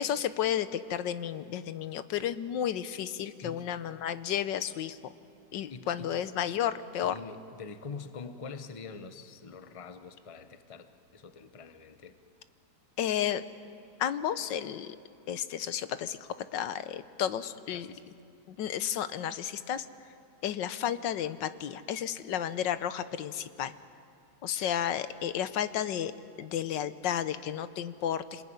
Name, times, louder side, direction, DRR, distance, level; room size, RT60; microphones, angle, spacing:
voice 1, 0.0-5.0 5.5-7.2 13.0-13.4 14.0-14.9 15.3-17.9 18.5-19.8 20.4-23.7 24.4-26.1 26.4-28.4, left 10 dB, 85° left, 13 dB, 1.5 m, -32 dB
voice 2, 5.5-6.2 7.0-12.2 17.7-18.0, left 4 dB, 25° left, 10 dB, 0.8 m, -45 dB
27.5 x 20.5 x 9.6 m, 2.4 s
omnidirectional pair, 1.9 m